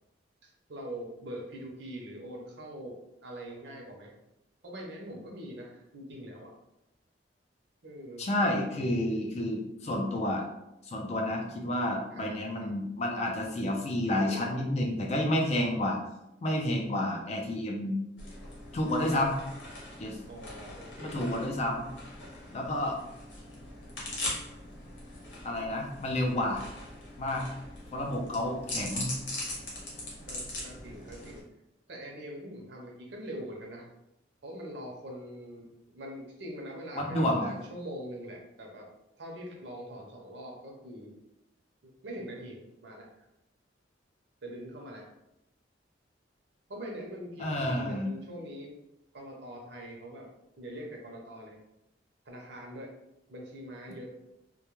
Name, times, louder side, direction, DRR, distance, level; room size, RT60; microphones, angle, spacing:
voice 1, 0.4-4.1 4.6-6.5 7.8-8.3 12.1-12.7 14.2-14.4 20.3-21.2 30.0-31.4 31.9-33.9 34.4-38.8 39.2-41.1 41.8-43.3 44.4-45.0 46.7-48.7 49.1-50.3 50.6-51.6 52.3-52.9 53.3-54.1, equal, 65° right, -1 dB, 0.6 m, -43 dB
voice 2, 8.2-10.5 10.8-16.0 16.4-18.0 18.7-19.4 20.0-20.2 21.0-21.9 22.5-23.0 25.4-26.6 27.2-27.4 27.9-29.1 37.0-37.5 47.4-48.1, left 1 dB, 35° left, 0 dB, 0.4 m, -30 dB
sound 1, 18.2-31.4, left 1 dB, 75° left, 0.9 m, -41 dB
2.2 x 2.2 x 3.0 m, 0.87 s
head